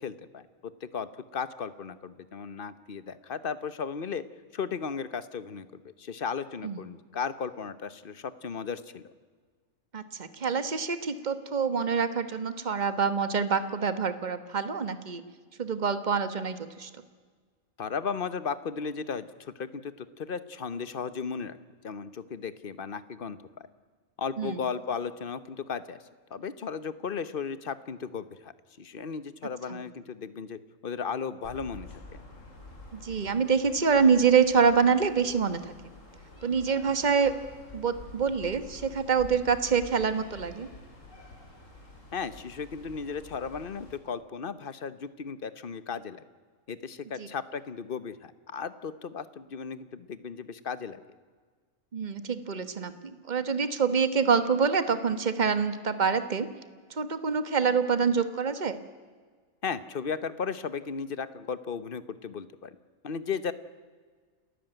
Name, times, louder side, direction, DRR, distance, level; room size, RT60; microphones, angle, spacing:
voice 1, 0.0-4.2 4.5-9.0 17.8-21.6 21.8-23.4 24.2-26.0 26.3-28.5 28.8-31.9 42.1-46.2 46.7-51.0 59.6-62.8 63.0-63.5, left 6 dB, 45° left, 14 dB, 1.1 m, -35 dB
voice 2, 9.9-15.2 15.6-16.9 24.4-24.6 32.9-35.6 36.4-37.3 37.7-40.7 47.2-47.3 51.9-56.5 56.9-58.8, right 6 dB, 35° right, 11 dB, 1.4 m, -26 dB
sound 1, 31.4-44.0, left 2 dB, 70° left, 3.9 m, -49 dB
29.5 x 13.5 x 9.1 m, 1.5 s
omnidirectional pair, 1.4 m